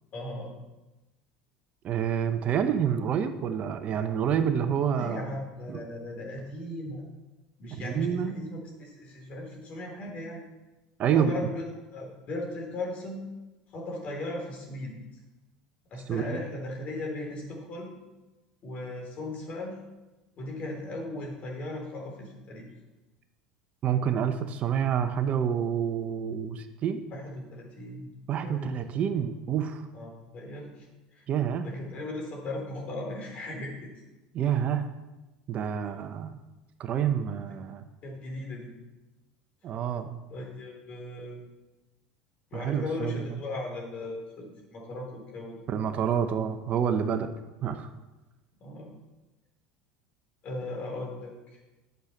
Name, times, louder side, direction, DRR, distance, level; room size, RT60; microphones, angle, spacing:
voice 1, 0.1-0.5 4.9-7.0 7.6-10.4 11.1-11.7 11.9-13.2 13.7-15.0 15.9-18.0 18.6-19.8 20.4-22.7 27.1-28.1 28.4-28.8 29.9-30.9 31.1-31.3 31.6-33.9 35.8-35.9 38.0-38.7 40.3-41.4 42.5-45.6 48.6-48.9 50.4-51.6, left 1 dB, 45° left, 0 dB, 3.6 m, -37 dB
voice 2, 1.8-5.2 5.7-5.8 7.8-8.3 11.0-11.3 16.1-16.4 23.8-27.0 28.3-29.9 31.3-31.7 34.3-34.9 35.5-36.4 36.8-37.8 39.6-40.2 42.5-43.2 45.7-47.3 47.6-47.9, right 8 dB, 45° right, 8 dB, 0.9 m, -28 dB
9.4 x 6.6 x 5.9 m, 1.1 s
supercardioid pair, 95°, 3 cm